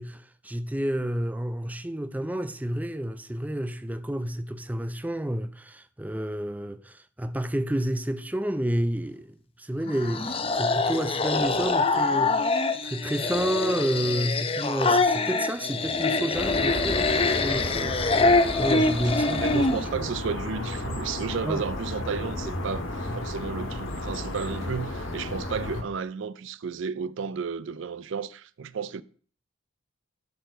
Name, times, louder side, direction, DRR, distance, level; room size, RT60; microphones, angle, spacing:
voice 1, 0.0-12.4 12.8-17.1 17.4-18.1 18.6-19.6 19.9-20.1 21.4-21.6, right 1 dB, 10° right, 0.4 m, -30 dB
sound 1, 9.9-19.9, left 3 dB, 30° left, 0.7 m, -24 dB
sound 2, 16.3-25.8, left 1 dB, 90° left, 1.8 m, -33 dB
voice 2, 19.3-29.0, right 6 dB, 70° right, 0.4 m, -33 dB
12.0 x 4.5 x 5.0 m
head